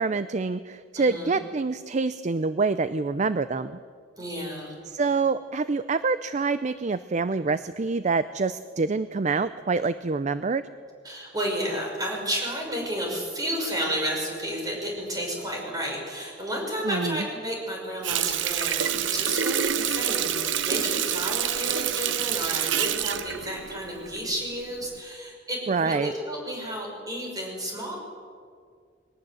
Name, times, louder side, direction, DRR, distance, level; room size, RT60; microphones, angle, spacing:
voice 1, 0.0-3.8 4.9-10.6 16.8-17.2 25.7-26.1, right 4 dB, 40° right, 13 dB, 0.5 m, -26 dB
voice 2, 1.0-1.4 4.2-4.7 11.0-28.0, equal, 20° right, 0 dB, 6.1 m, -32 dB
Water tap faucet, 18.0-24.4 24.8-25.0, right 9 dB, 80° right, 0.8 m, -27 dB
22.0 x 18.5 x 7.8 m, 2.1 s
head